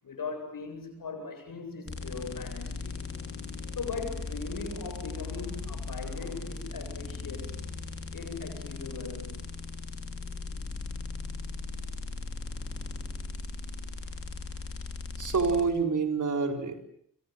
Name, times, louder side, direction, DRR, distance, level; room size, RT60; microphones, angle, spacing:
voice 1, 0.0-3.0 3.8-7.6 8.1-9.4, left 4 dB, 80° left, 6 dB, 7.9 m, -39 dB
sound 1, 1.9-15.6, left 3 dB, 40° left, 5.0 m, -38 dB
voice 2, 15.2-16.8, right 4 dB, 60° right, 5 dB, 4.8 m, -27 dB
27.0 x 26.5 x 7.7 m, 0.65 s
cardioid pair, 55°, 33 cm